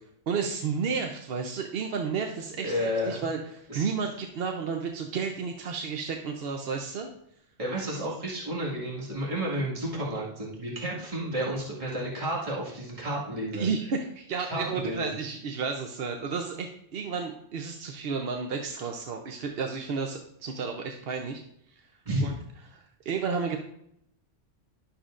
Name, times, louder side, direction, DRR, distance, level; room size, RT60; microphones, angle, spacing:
voice 1, 0.3-7.1 13.5-21.4 22.2-22.3 22.7-23.6, right 5 dB, 60° right, 3 dB, 0.9 m, -32 dB
voice 2, 2.6-3.3 3.7-3.9 7.6-13.7 14.5-15.1 22.1-22.3, equal, 30° right, -5 dB, 1.9 m, -31 dB
11.5 x 6.6 x 2.5 m, 0.74 s
omnidirectional pair, 1.3 m